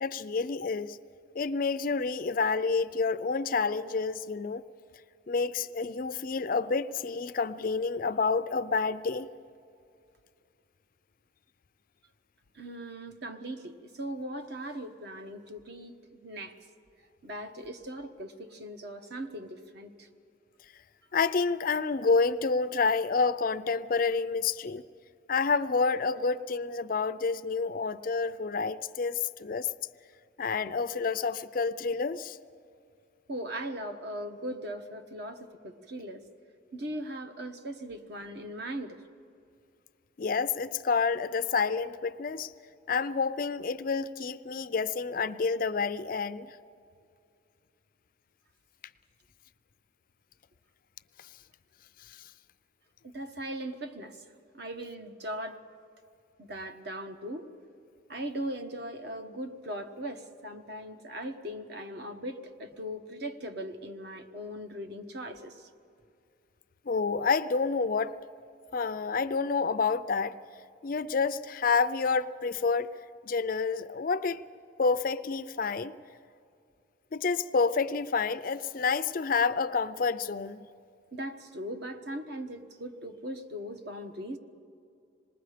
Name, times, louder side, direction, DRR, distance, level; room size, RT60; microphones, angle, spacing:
voice 1, 0.0-1.0 1.3-4.6 5.3-9.3 21.1-24.8 25.3-29.7 30.4-32.4 40.2-42.5 42.9-46.6 52.1-52.3 66.9-68.2 68.7-70.4 70.8-72.9 73.2-74.4 74.8-76.0 77.1-80.7, left 4 dB, 45° left, 0.4 m, -29 dB
voice 2, 12.5-16.6 17.2-20.1 33.3-36.2 36.7-39.0 53.0-54.2 54.5-55.6 56.4-57.5 58.1-65.7 81.1-84.4, right 1 dB, 55° right, 1.2 m, -39 dB
26.5 x 20.0 x 5.0 m
head